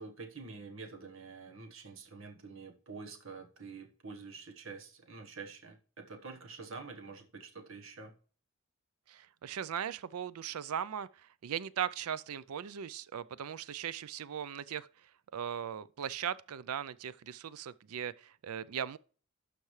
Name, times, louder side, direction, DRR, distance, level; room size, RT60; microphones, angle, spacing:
voice 1, 0.0-8.1, right 4 dB, 65° right, 1.3 m, -47 dB
voice 2, 9.1-14.9 15.3-19.0, right 9 dB, 85° right, 0.4 m, -38 dB
12.0 x 5.9 x 3.2 m
head